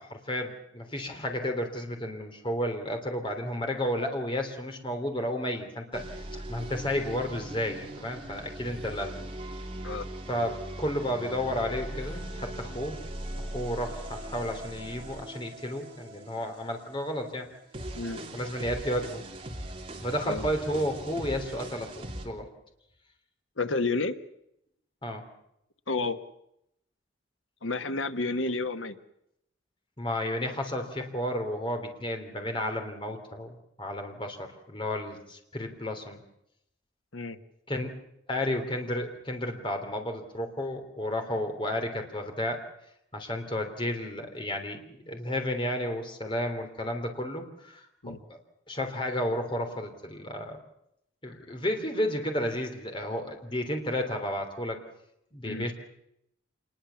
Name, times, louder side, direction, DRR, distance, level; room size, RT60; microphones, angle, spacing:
voice 1, 0.0-9.2 10.3-13.0 13.4-17.5 18.3-19.2 20.0-21.9 22.2-22.5 25.0-25.2 30.0-36.2 37.7-37.9 38.3-42.6 43.1-48.4 48.7-50.6 51.2-54.8 55.3-55.7, left 1 dB, 25° left, 4 dB, 3.3 m, -32 dB
sound 1, 5.9-22.3, right 1 dB, 30° right, 3.0 m, -40 dB
voice 2, 23.6-24.1 25.9-26.2 27.6-29.0 37.1-37.4 48.0-48.2 55.4-55.7, left 3 dB, 90° left, 10 dB, 1.4 m, -30 dB
26.0 x 21.0 x 7.1 m, 0.79 s
head